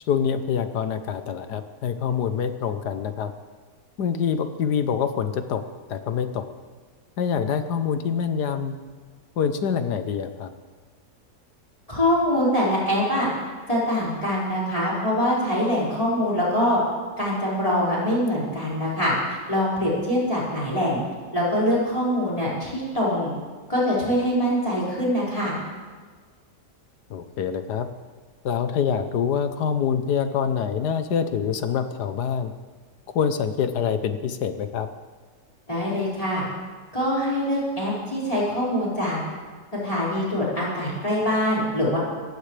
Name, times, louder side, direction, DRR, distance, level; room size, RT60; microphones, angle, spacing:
voice 1, 0.1-3.3 4.0-5.6 5.9-6.4 7.2-8.7 9.4-10.5 27.1-27.9 28.4-32.5 33.1-34.9, left 7 dB, 70° left, 9 dB, 1.4 m, -25 dB
voice 2, 11.9-13.3 13.7-16.8 17.2-21.0 21.3-23.3 23.7-25.5 35.7-36.4 36.9-39.2 39.8-42.0, equal, 20° left, -6 dB, 5.5 m, -24 dB
26.5 x 15.0 x 3.4 m, 1.5 s
omnidirectional pair, 1.8 m